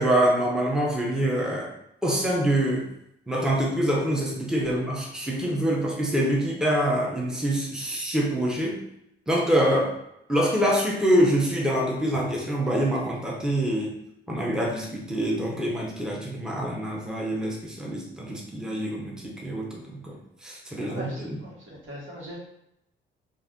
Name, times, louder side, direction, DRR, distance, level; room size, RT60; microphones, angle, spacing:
voice 1, 0.0-1.7 2.0-2.9 3.3-8.8 9.3-9.9 10.3-14.0 14.3-21.4, right 1 dB, 5° right, -2 dB, 0.6 m, -25 dB
voice 2, 20.7-22.4, equal, 75° right, -5 dB, 1.3 m, -40 dB
2.5 x 2.4 x 3.5 m, 0.79 s
cardioid pair, 90°, 20 cm